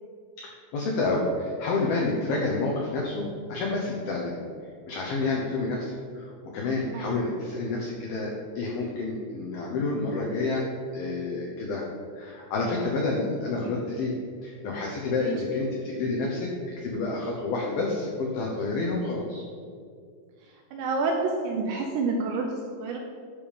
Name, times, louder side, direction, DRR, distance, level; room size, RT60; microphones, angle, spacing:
voice 1, 0.4-4.4 4.9-10.7 10.9-11.8 12.2-14.1 14.4-19.4, left 3 dB, 80° left, -2 dB, 2.1 m, -29 dB
voice 2, 20.7-22.5 22.8-23.0, right 3 dB, 80° right, 1 dB, 2.6 m, -28 dB
12.5 x 5.3 x 5.2 m, 2.2 s
omnidirectional pair, 5.8 m